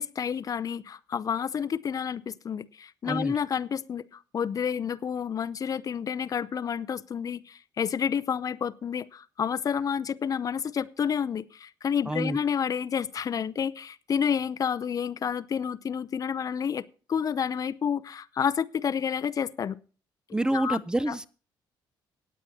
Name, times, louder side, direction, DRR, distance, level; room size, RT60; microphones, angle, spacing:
voice 1, 0.0-19.8 20.5-20.8 21.1-21.2, left 7 dB, 45° left, 17 dB, 0.6 m, -30 dB
voice 2, 12.1-12.4 20.3-21.3, right 1 dB, 10° right, 18 dB, 0.5 m, -27 dB
17.5 x 9.8 x 2.8 m, 0.36 s
cardioid pair, 100°, 9 cm